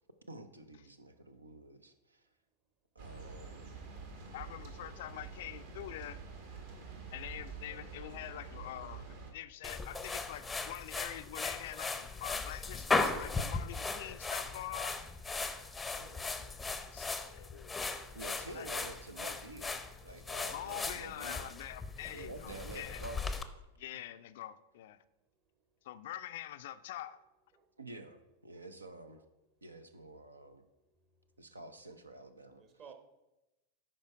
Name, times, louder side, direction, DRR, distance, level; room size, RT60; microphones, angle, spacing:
voice 1, 0.3-2.2 2.9-3.7 16.0-16.3 18.1-21.5 22.1-23.4 23.9-24.0 27.8-29.2 29.6-30.6 31.4-32.6, right 2 dB, 80° right, 10 dB, 0.6 m, -49 dB
sound 1, 3.0-9.3, right 4 dB, 55° right, 1.4 m, -47 dB
voice 2, 4.3-6.2 7.1-15.0 16.4-18.1 18.5-18.7 20.5-23.0 23.8-25.0 25.8-27.2, left 13 dB, 55° left, 13 dB, 0.3 m, -45 dB
sound 2, 9.6-23.4, left 3 dB, 10° left, 0.6 m, -38 dB
voice 3, 32.6-32.9, right 7 dB, 35° right, 6 dB, 1.1 m, -56 dB
10.5 x 4.4 x 4.6 m, 0.97 s
figure-of-eight pair, 90°, 0 cm